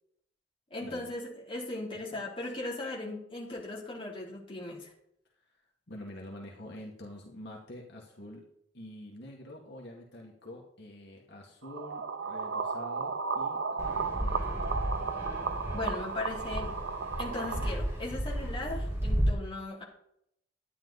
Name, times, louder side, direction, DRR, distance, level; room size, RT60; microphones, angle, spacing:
voice 1, 0.7-4.9 15.7-16.8 17.2-19.8, left 2 dB, 30° left, -3 dB, 3.6 m, -38 dB
voice 2, 5.9-8.4 8.7-13.6 13.9-14.4, left 1 dB, 65° left, -1 dB, 2.3 m, -46 dB
sound 1, 11.6-17.7, right 5 dB, 90° right, 0.8 m, -34 dB
Fixed-wing aircraft airplane, 13.8-19.3, equal, 15° right, 3.2 m, -33 dB
12.5 x 10.5 x 4.1 m, 0.74 s
head